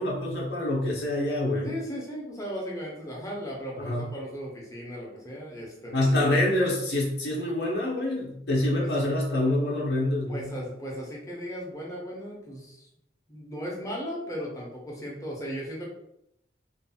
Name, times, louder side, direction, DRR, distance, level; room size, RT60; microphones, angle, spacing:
voice 1, 0.0-1.7 3.7-4.0 5.9-10.5, left 1 dB, 65° left, -4 dB, 0.6 m, -26 dB
voice 2, 1.6-6.4 8.8-8.9 10.3-12.9 13.3-15.8, equal, 20° left, -3 dB, 0.6 m, -36 dB
2.5 x 2.2 x 2.7 m, 0.80 s
head